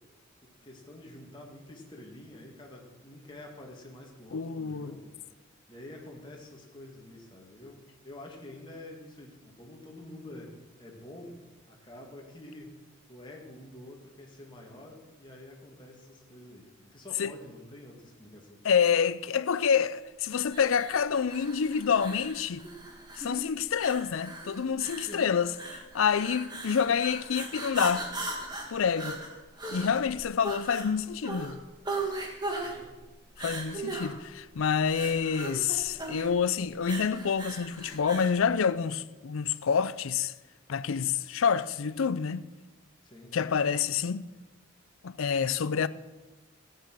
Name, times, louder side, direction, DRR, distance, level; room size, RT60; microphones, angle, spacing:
voice 1, 0.4-5.2 5.7-10.5 10.8-11.4 11.7-12.8 13.1-18.6 25.0-25.3 32.6-32.9 43.0-43.3, left 1 dB, 20° left, 2.1 m, -48 dB
voice 2, 4.3-4.9 17.2-17.3 18.6-22.6 23.2-28.1 28.7-29.2 29.7-31.6 33.4-40.3 40.7-42.4 43.3-44.2 45.0-45.9, left 6 dB, 75° left, 0.5 m, -27 dB
sound 1, 20.5-38.4, right 2 dB, 20° right, 1.7 m, -38 dB
14.5 x 8.9 x 6.2 m
head